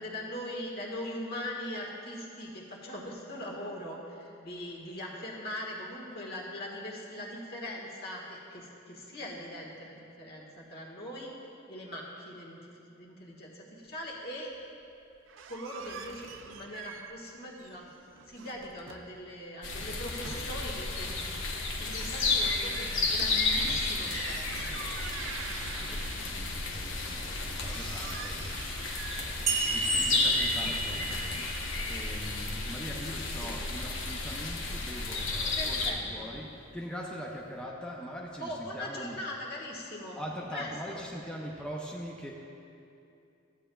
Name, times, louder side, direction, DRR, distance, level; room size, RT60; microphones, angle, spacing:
voice 1, 0.0-11.3 11.7-14.5 15.5-17.9 18.3-21.2 21.7-25.0 33.4-33.5 35.6-36.3 38.4-40.2 40.5-41.0, left 1 dB, 55° left, -2 dB, 1.4 m, -41 dB
sound 1, 15.1-17.3 17.6-19.2 19.6-20.9 23.1-26.5 27.0-31.4, right 5 dB, 70° right, 0.5 m, -45 dB
sound 2, 19.6-35.9, left 3 dB, 70° left, 0.9 m, -32 dB
voice 2, 25.8-39.2 40.2-42.3, equal, 5° left, -3 dB, 0.5 m, -42 dB
sound 3, 29.5-32.8, right 3 dB, 35° right, 0.9 m, -33 dB
14.0 x 8.6 x 2.3 m, 2.6 s
head